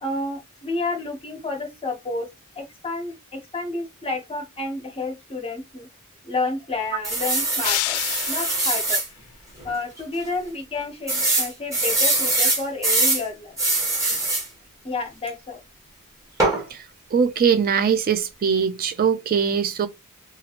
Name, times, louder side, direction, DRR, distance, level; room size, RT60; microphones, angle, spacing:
voice 1, 0.0-2.3 2.6-5.9 6.2-8.0 8.3-9.0 9.6-13.5 14.8-15.6, left 3 dB, 25° left, 0.9 m, -30 dB
sound 1, 7.0-9.1 9.6-9.7 10.0-10.1 11.1-13.2 13.6-14.5 16.4-16.6, right 2 dB, 15° right, 1.2 m, -22 dB
sound 2, 7.6-8.9, left 14 dB, 80° left, 0.4 m, -28 dB
voice 2, 17.1-19.9, right 7 dB, 40° right, 0.4 m, -21 dB
3.0 x 2.4 x 2.8 m
head